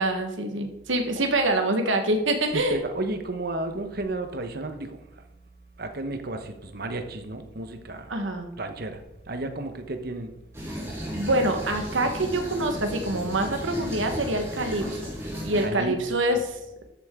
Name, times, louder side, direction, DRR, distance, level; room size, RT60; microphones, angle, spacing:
voice 1, 0.0-2.8 8.1-8.5 11.1-15.1 15.4-16.6, right 1 dB, 90° right, 1.4 m, -25 dB
voice 2, 2.5-5.0 5.8-8.1 8.6-9.0 9.3-10.3 15.6-16.0, right 2 dB, 55° right, 1.1 m, -32 dB
sound 1, 10.5-15.7, equal, 15° right, 3.3 m, -34 dB
13.5 x 8.1 x 3.7 m
head